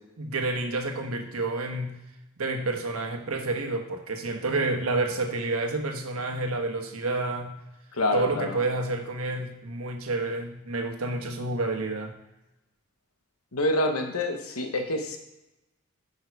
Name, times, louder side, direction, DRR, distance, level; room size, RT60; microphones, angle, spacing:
voice 1, 0.2-2.0 2.4-7.5 8.1-12.1, right 2 dB, 90° right, 3 dB, 1.2 m, -29 dB
voice 2, 8.0-8.6 13.5-15.2, left 1 dB, 85° left, 5 dB, 1.1 m, -27 dB
9.7 x 5.6 x 4.7 m, 0.94 s
head